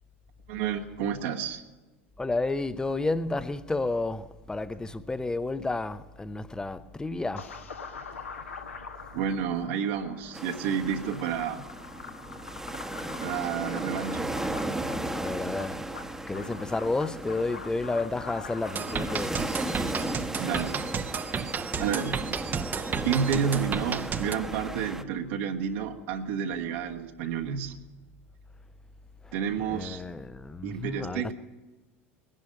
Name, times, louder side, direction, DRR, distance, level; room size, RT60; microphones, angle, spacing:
voice 1, 0.5-1.6 9.1-11.7 13.2-14.4 20.4-20.9 21.8-22.2 23.0-27.8 29.3-30.0 30.6-31.3, right 7 dB, 60° right, 1.4 m, -30 dB
voice 2, 2.2-7.5 15.1-15.9 16.3-19.4 19.8-19.9 29.7-31.2, left 2 dB, 10° left, 0.6 m, -31 dB
sound 1, 7.4-19.2, left 5 dB, 80° left, 1.4 m, -44 dB
sound 2, 10.3-25.0, right 1 dB, 5° right, 1.0 m, -36 dB
sound 3, 18.8-24.3, right 6 dB, 25° right, 0.8 m, -32 dB
20.5 x 11.0 x 5.4 m
figure-of-eight pair, 80°, 7 cm